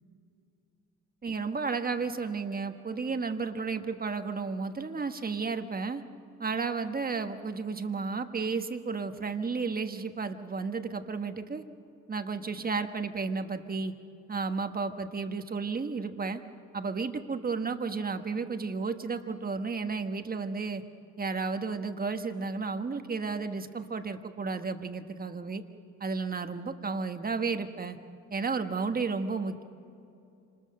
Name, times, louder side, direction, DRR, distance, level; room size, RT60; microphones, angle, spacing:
voice 1, 1.2-6.0 6.4-11.6 12.1-13.9 14.3-16.4 16.7-20.8 21.2-25.6 26.0-28.0 28.3-29.6, right 4 dB, 30° right, 7 dB, 1.4 m, -32 dB
26.5 x 20.5 x 6.6 m, 2.7 s
cardioid pair, 90°, 30 cm